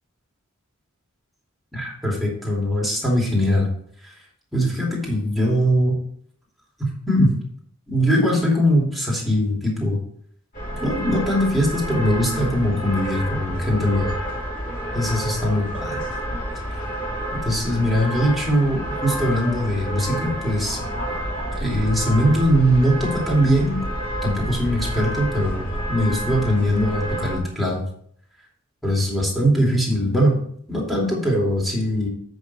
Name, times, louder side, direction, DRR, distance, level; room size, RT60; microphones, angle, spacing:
voice 1, 1.7-3.7 4.0-4.1 4.5-5.9 6.8-7.3 7.9-10.0 10.8-14.2 14.9-16.0 17.4-20.8 21.5-23.8 24.2-27.8 28.8-30.4 30.7-32.1, equal, ahead, -4 dB, 2.8 m, -21 dB
sound 1, 10.5-27.4, right 1 dB, 40° left, 4.1 m, -29 dB
8.2 x 6.5 x 4.2 m, 0.64 s
head